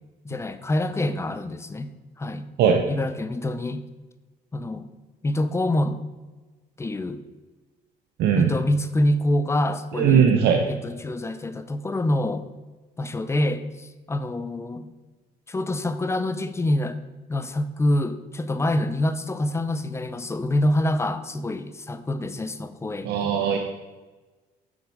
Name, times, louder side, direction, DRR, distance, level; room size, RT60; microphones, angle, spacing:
voice 1, 0.2-1.9 2.2-2.5 2.9-3.8 4.5-4.9 5.2-6.0 6.8-7.2 8.3-10.3 10.7-12.5 13.0-14.9 15.5-17.0 17.3-23.3, left 1 dB, 15° left, 11 dB, 0.6 m, -26 dB
voice 2, 8.2-8.5 10.0-10.6 23.0-23.6, right 7 dB, 75° right, 3 dB, 0.9 m, -19 dB
7.0 x 6.4 x 4.7 m, 1.2 s
cardioid pair, 110°, 17 cm